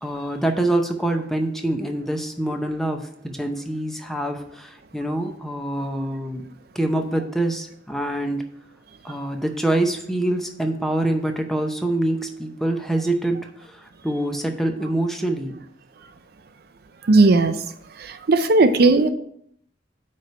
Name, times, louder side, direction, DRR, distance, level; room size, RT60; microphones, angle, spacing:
voice 1, 0.0-6.4 6.7-8.4 9.0-15.6, right 1 dB, ahead, 4 dB, 0.6 m, -25 dB
voice 2, 17.1-17.5 18.3-19.1, right 3 dB, 50° right, 10 dB, 0.5 m, -15 dB
8.9 x 3.2 x 5.3 m, 0.68 s
head